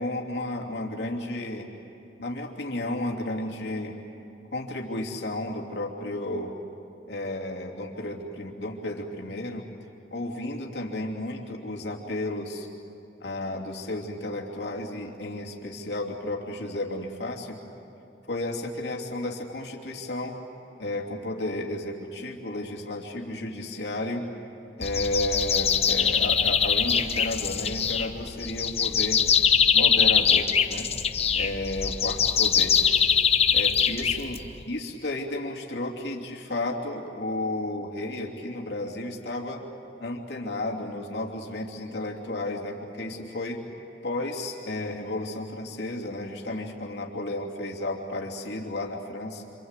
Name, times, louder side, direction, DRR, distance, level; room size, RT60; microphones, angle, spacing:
voice 1, 0.0-1.7 2.2-4.0 4.5-6.5 7.1-9.7 10.1-12.7 13.2-17.6 18.3-20.4 20.8-24.3 24.8-29.2 29.7-30.9 31.3-32.8 33.5-39.6 40.0-43.6 44.0-49.4, left 1 dB, 70° left, -1 dB, 3.0 m, -32 dB
sound 1, 24.8-34.6, left 7 dB, 35° left, 1.0 m, -23 dB
27.0 x 26.5 x 8.3 m, 2.9 s
head